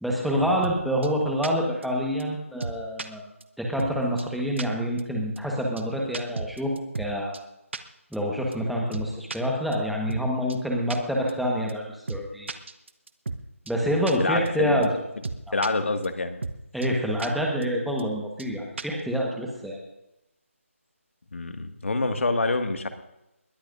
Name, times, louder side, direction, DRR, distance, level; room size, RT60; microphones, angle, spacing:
voice 1, 0.0-3.2 3.6-7.3 8.1-12.5 13.7-14.9 15.5-15.6 16.7-19.8, equal, ahead, -2 dB, 1.3 m, -27 dB
sound 1, 0.6-0.8 1.0-1.1 1.4-1.5 1.8-1.9 2.2-2.3 2.6-3.1 3.4-3.5 3.8-3.9 4.2-4.3 4.6-4.7 5.0-5.1 5.4-5.5 5.8-5.9 6.1-7.1 7.3-7.4 7.7-7.8 8.1-8.2 8.5-8.6 8.9-9.4 9.7-9.8 10.1-10.2 10.5-10.6 10.9-11.0 11.3-11.4 11.7-11.8 12.1-12.2 12.5-13.4 13.7-13.8 14.1-14.2 14.5-14.6 14.8-14.9 15.2-15.7 16.0-16.1 16.4-16.6 16.8-16.9 17.2-17.3 17.6-17.7 18.0-18.1 18.4-18.5 18.8-19.0, right 3 dB, 55° right, 1.1 m, -33 dB
voice 2, 13.8-15.0 15.5-16.4 21.3-22.9, left 3 dB, 60° left, 6 dB, 1.9 m, -27 dB
21.5 x 16.5 x 2.6 m, 0.91 s
figure-of-eight pair, 165°, 8 cm